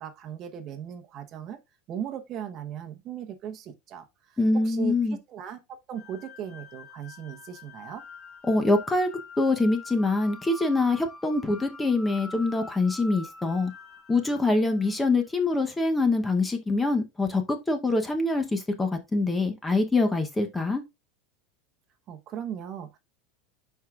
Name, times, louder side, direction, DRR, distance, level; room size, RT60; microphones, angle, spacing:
voice 1, 0.0-1.6 1.9-8.0 22.1-23.0, right 9 dB, 35° right, 0.9 m, -38 dB
voice 2, 4.4-5.2 8.5-9.1 9.4-13.7 14.1-20.8, left 2 dB, 10° left, 0.8 m, -24 dB
sound 1, 5.9-15.1, left 4 dB, 10° right, 4.8 m, -46 dB
11.0 x 4.6 x 2.4 m
supercardioid pair, 160°, 0 cm